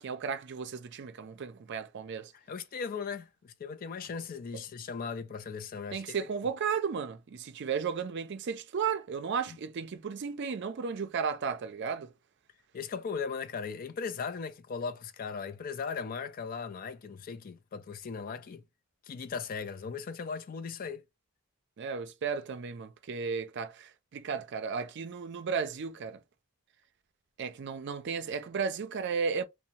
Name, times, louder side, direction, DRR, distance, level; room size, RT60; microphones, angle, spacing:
voice 1, 0.0-2.3 5.9-12.1 21.8-26.2 27.4-29.4, right 6 dB, 55° right, 0.4 m, -34 dB
voice 2, 2.3-6.3 9.5-9.6 12.7-18.6 19.1-21.0, left 5 dB, 40° left, 0.3 m, -38 dB
2.6 x 2.1 x 2.8 m
head